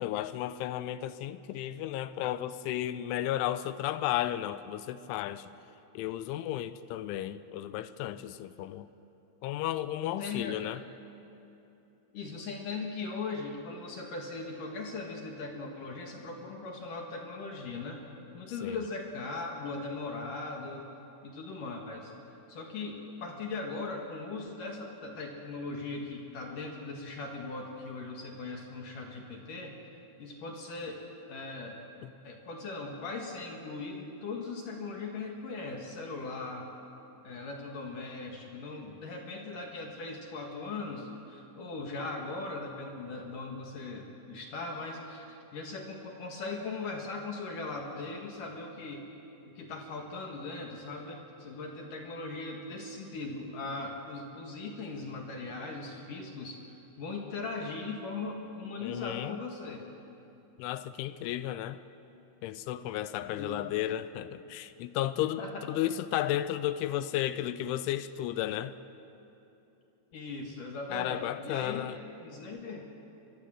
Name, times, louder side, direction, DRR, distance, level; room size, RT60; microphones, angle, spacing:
voice 1, 0.0-5.5 5.9-8.9 9.4-10.8 18.6-18.8 32.0-32.1 58.8-59.4 60.6-61.8 62.4-68.8 70.9-72.0, left 13 dB, 85° left, 3.1 m, -33 dB
voice 2, 10.0-10.6 12.1-18.0 18.3-20.9 21.2-22.1 22.5-29.8 30.2-31.0 31.3-31.8 32.2-36.7 37.2-49.1 49.6-56.6 57.0-59.8 63.3-63.5 65.4-65.6 70.1-71.9 72.2-72.9, left 3 dB, 55° left, 2.7 m, -39 dB
23.5 x 23.5 x 7.5 m
omnidirectional pair, 5.5 m